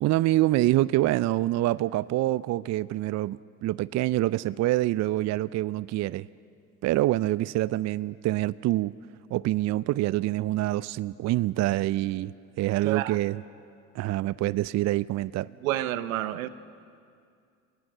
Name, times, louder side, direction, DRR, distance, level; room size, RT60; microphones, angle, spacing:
voice 1, 0.0-6.3 6.8-8.9 9.3-13.4 13.9-15.5, right 16 dB, 40° right, 19 dB, 0.5 m, -26 dB
voice 2, 12.8-13.2 15.6-16.5, right 14 dB, 75° right, 14 dB, 0.9 m, -29 dB
24.5 x 18.5 x 7.7 m, 2.3 s
hypercardioid pair, 60°, 41 cm